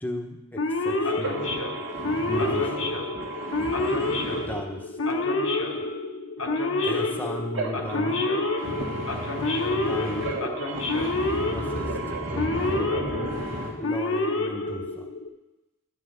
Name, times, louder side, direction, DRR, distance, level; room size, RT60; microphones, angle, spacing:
voice 1, 0.0-1.4 2.3-3.0 4.2-4.9 6.8-8.2 9.9-10.3 11.5-11.9 12.3-13.0 13.8-15.0, equal, 10° left, 2 dB, 1.0 m, -35 dB
Male speech man speaking / Siren, 0.6-15.3, left 2 dB, 75° left, 1.2 m, -28 dB
voice 2, 1.2-4.5 7.5-13.7, right 2 dB, 60° right, -6 dB, 1.8 m, -33 dB
11.5 x 5.7 x 8.1 m, 1.0 s
head